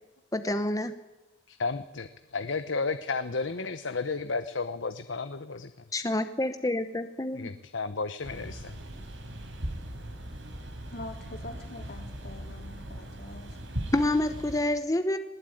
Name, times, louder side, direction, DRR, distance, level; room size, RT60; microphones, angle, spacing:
voice 1, 0.3-0.9 5.9-7.5 13.9-15.2, left 1 dB, 20° left, 9 dB, 0.9 m, -28 dB
voice 2, 1.5-5.7 7.3-8.8, left 4 dB, 75° left, 10 dB, 0.9 m, -33 dB
sound 1, 8.2-14.6, right 1 dB, 75° right, 4.5 m, -39 dB
voice 3, 10.9-13.5, left 2 dB, 55° left, 3 dB, 3.6 m, -44 dB
20.0 x 19.5 x 9.2 m, 1.0 s
head